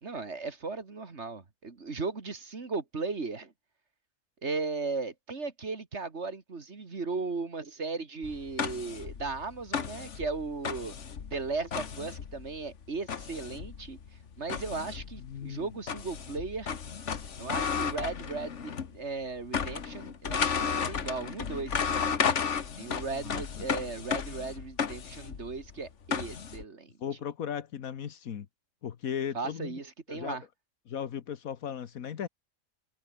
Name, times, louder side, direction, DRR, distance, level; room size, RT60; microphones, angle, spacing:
voice 1, 0.0-3.5 4.4-10.9 11.3-14.0 14.4-16.8 17.4-22.2 22.8-26.9 29.3-30.4, right 4 dB, 55° right, 2.4 m, -36 dB
sound 1, 8.2-19.0 19.2-26.6, left 6 dB, 60° left, 1.7 m, -34 dB
voice 2, 15.2-15.8 23.1-23.6 27.0-28.5 28.8-29.8 30.1-30.4 30.9-32.3, left 8 dB, 80° left, 1.6 m, -37 dB
omnidirectional pair, 1.4 m